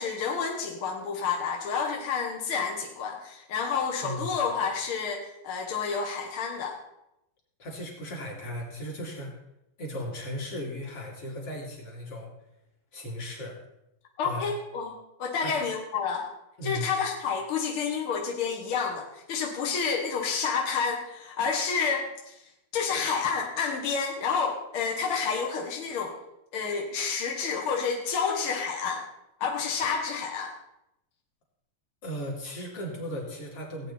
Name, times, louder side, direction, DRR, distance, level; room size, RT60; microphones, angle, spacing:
voice 1, 0.0-6.8 14.2-16.3 16.6-22.3 22.7-26.1 26.5-29.0 29.4-30.5, left 5 dB, 65° left, 1 dB, 1.3 m, -29 dB
voice 2, 4.0-4.4 7.6-9.4 9.8-12.3 12.9-13.6 14.2-14.6 15.4-15.6 16.6-17.0 32.0-33.9, equal, 40° left, -3 dB, 3.3 m, -36 dB
16.5 x 8.9 x 4.2 m, 0.86 s
omnidirectional pair, 4.4 m